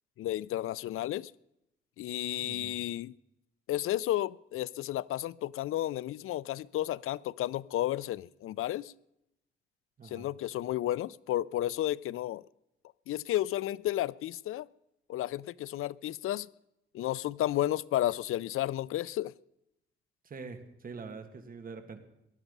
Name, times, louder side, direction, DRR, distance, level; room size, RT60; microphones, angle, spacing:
voice 1, 0.2-1.3 2.0-3.2 3.7-8.9 10.0-12.4 13.1-14.7 15.1-16.5 16.9-19.3, left 13 dB, 85° left, 22 dB, 0.4 m, -32 dB
voice 2, 2.4-2.8 10.0-10.3 20.2-22.0, right 4 dB, 45° right, 7 dB, 2.0 m, -44 dB
18.5 x 12.0 x 5.4 m, 0.85 s
wide cardioid pair, 145°, 21 cm